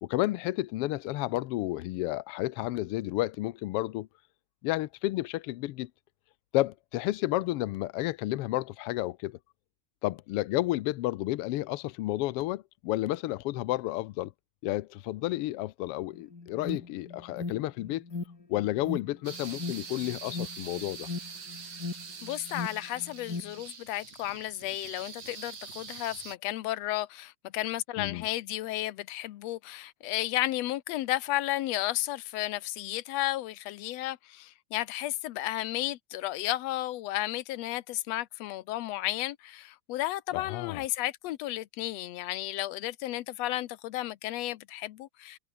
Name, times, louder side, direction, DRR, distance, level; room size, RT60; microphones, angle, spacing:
voice 1, 0.0-4.1 4.6-5.9 6.5-9.4 10.0-14.3 14.6-18.0 18.5-21.1 28.0-28.3 40.3-40.8, left 17 dB, 90° left, 1.2 m, -31 dB
Alarm, 16.1-23.6, left 4 dB, 30° left, 3.7 m, -39 dB
sound 1, 19.3-26.4, right 5 dB, 60° right, 4.9 m, -44 dB
voice 2, 22.2-45.4, left 15 dB, 70° left, 1.7 m, -33 dB
omnidirectional pair, 3.5 m